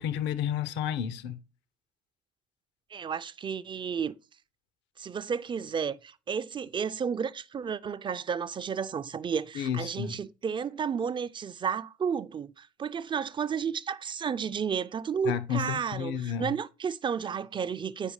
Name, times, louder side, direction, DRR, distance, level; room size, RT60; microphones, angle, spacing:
voice 1, 0.0-1.4 9.5-10.2 15.2-16.5, left 9 dB, 70° left, 0.6 m, -31 dB
voice 2, 2.9-4.1 5.0-18.1, right 7 dB, 25° right, 0.3 m, -32 dB
8.3 x 4.9 x 3.1 m
hypercardioid pair, 65°, 19 cm